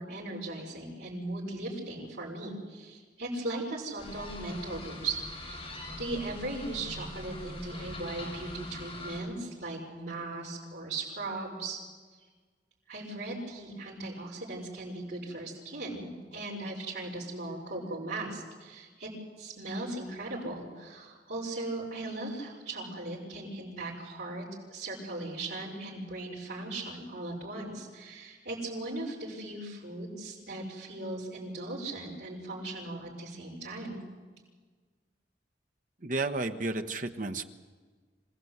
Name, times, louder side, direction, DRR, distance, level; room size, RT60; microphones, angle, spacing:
voice 1, 0.0-5.7 6.0-11.8 12.9-19.1 19.4-24.4 24.7-34.0, right 2 dB, 75° right, -7 dB, 5.9 m, -38 dB
sound 1, 4.0-9.2, left 1 dB, 30° left, 7.4 m, -43 dB
voice 2, 36.0-37.4, right 2 dB, 50° right, 7 dB, 1.2 m, -32 dB
26.5 x 17.0 x 8.1 m, 1.4 s
head